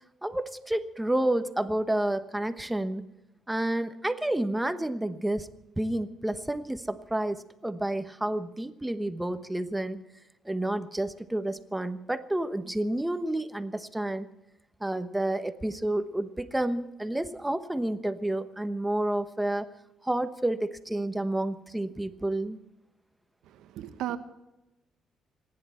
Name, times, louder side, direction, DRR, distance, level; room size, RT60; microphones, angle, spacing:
voice 1, 0.2-3.1 3.5-5.5 5.8-10.0 10.4-14.3 14.8-19.7 20.0-22.6, right 1 dB, 10° right, 10 dB, 1.1 m, -30 dB
voice 2, 23.6-24.2, right 12 dB, 90° right, 10 dB, 1.1 m, -34 dB
26.0 x 11.0 x 4.4 m, 0.97 s
cardioid pair, 90°, 0 cm